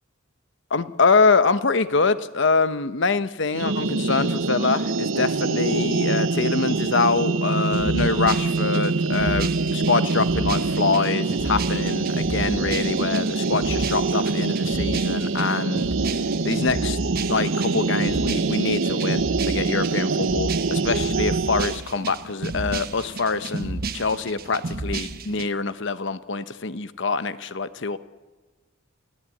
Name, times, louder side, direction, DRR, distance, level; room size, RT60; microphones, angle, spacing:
voice 1, 0.7-15.9 16.4-17.0 17.3-28.0, left 4 dB, 60° left, 13 dB, 0.9 m, -24 dB
sound 1, 3.5-21.8, right 3 dB, 70° right, 0.8 m, -24 dB
sound 2, 7.7-25.5, right 3 dB, 50° right, 1.1 m, -32 dB
29.0 x 17.0 x 8.5 m, 1.3 s
head